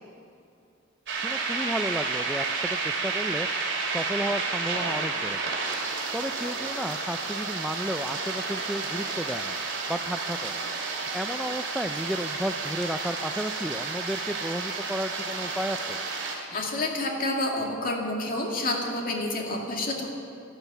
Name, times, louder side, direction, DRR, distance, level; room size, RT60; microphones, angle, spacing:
sound 1, 1.1-16.4, right 4 dB, 60° right, 2.7 m, -31 dB
voice 1, 1.2-3.5 3.9-5.6 6.1-9.6 9.9-10.6 11.1-16.0, equal, ahead, 7 dB, 0.3 m, -33 dB
voice 2, 16.5-20.1, left 2 dB, 45° left, 0 dB, 2.3 m, -29 dB
12.5 x 12.0 x 8.2 m, 2.6 s
head